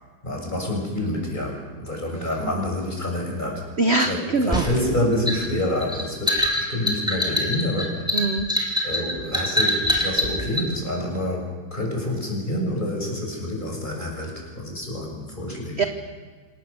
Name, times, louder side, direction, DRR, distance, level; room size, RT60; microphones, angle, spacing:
voice 1, 0.2-3.6 4.1-8.1 8.8-15.9, left 1 dB, 25° left, 0 dB, 6.4 m, -27 dB
voice 2, 3.8-4.7 8.1-8.5 15.8-15.9, right 2 dB, 45° right, 7 dB, 1.0 m, -22 dB
sound 1, 4.5-10.7, left 1 dB, ahead, 3.2 m, -24 dB
27.5 x 18.0 x 6.9 m, 1.5 s
omnidirectional pair, 2.1 m